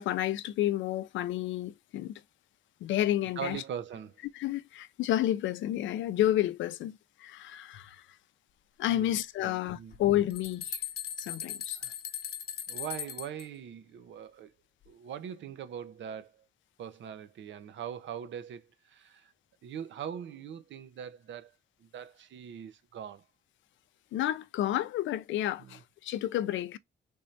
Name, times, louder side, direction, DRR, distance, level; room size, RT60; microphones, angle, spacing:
voice 1, 0.0-2.1 2.8-3.6 4.3-8.0 8.8-10.8 11.2-11.8 24.1-26.8, left 13 dB, 90° left, 0.5 m, -30 dB
voice 2, 3.4-4.2 8.9-10.0 11.8-11.9 12.7-14.5 14.9-16.5 16.8-19.3 19.6-21.5 21.8-23.2 25.6-25.8, right 8 dB, 80° right, 0.7 m, -42 dB
sound 1, 9.9-10.0 10.3-13.4, left 9 dB, 55° left, 0.9 m, -38 dB
3.6 x 3.2 x 2.6 m
cardioid pair, 75°, 19 cm